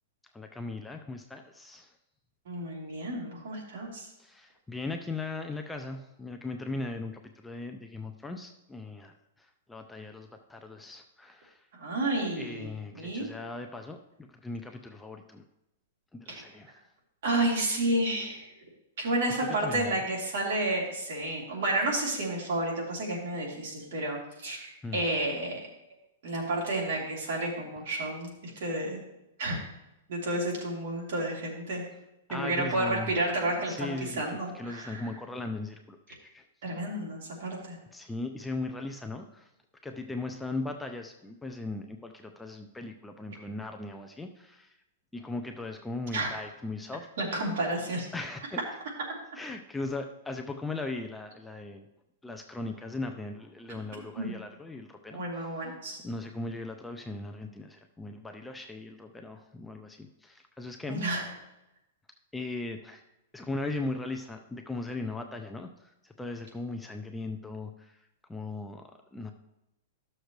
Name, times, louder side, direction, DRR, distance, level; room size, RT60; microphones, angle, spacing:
voice 1, 0.3-1.9 4.2-11.7 12.4-15.4 16.1-16.8 19.4-19.9 24.8-25.0 32.3-33.1 33.4-34.2 34.5-36.4 37.9-39.5 39.8-44.7 45.1-47.1 48.1-48.6 49.4-51.9 52.2-55.2 56.0-61.0 62.3-63.0 63.3-68.0 68.3-69.3, left 2 dB, 5° left, 4 dB, 0.5 m, -38 dB
voice 2, 2.4-4.1 11.7-12.7 12.9-13.3 16.3-16.4 17.2-18.5 19.0-25.6 26.2-29.0 29.4-29.6 30.1-31.8 32.3-35.0 36.6-37.8 46.1-46.3 47.2-48.1 54.2-54.4 55.1-56.0 60.9-61.2, right 1 dB, 60° right, -2 dB, 2.8 m, -31 dB
12.5 x 6.6 x 3.1 m, 0.90 s
supercardioid pair, 160°, 0 cm